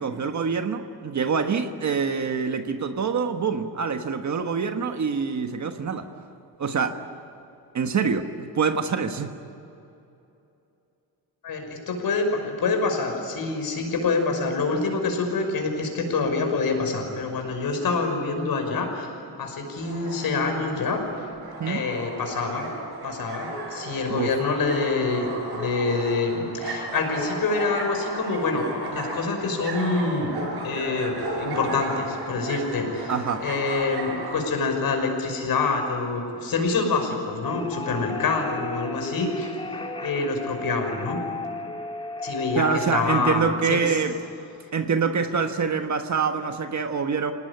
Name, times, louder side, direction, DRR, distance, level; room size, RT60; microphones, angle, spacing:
voice 1, 0.0-6.1 6.6-7.0 7.7-9.3 21.6-21.8 24.1-24.3 33.1-33.4 42.6-44.1 44.7-47.3, right 5 dB, 45° right, 6 dB, 1.4 m, -25 dB
voice 2, 11.4-19.1 19.4-21.0 21.7-22.7 23.0-28.7 28.9-30.3 30.6-33.1 33.4-39.6 40.0-41.2 42.2-44.0, left 3 dB, 60° left, 3 dB, 6.0 m, -26 dB
sound 1, 19.7-34.4, right 1 dB, 65° right, 7.1 m, -35 dB
sound 2, 37.4-43.1, left 2 dB, 15° left, 2.4 m, -34 dB
27.5 x 19.0 x 10.0 m, 2.8 s
cardioid pair, 150°, 40 cm